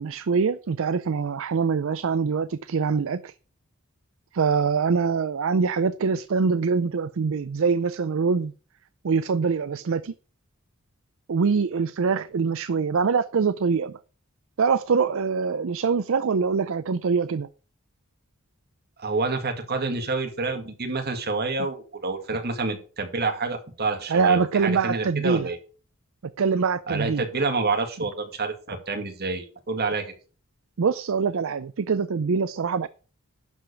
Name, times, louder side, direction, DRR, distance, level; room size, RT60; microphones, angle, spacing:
voice 1, 0.0-3.3 4.3-8.5 9.0-10.1 11.3-13.9 14.6-17.5 24.1-25.5 26.4-27.2 30.8-32.9, right 5 dB, 65° right, 0.5 m, -24 dB
voice 2, 19.0-25.6 26.9-30.1, right 3 dB, 50° right, 2.2 m, -28 dB
11.5 x 5.0 x 6.8 m
head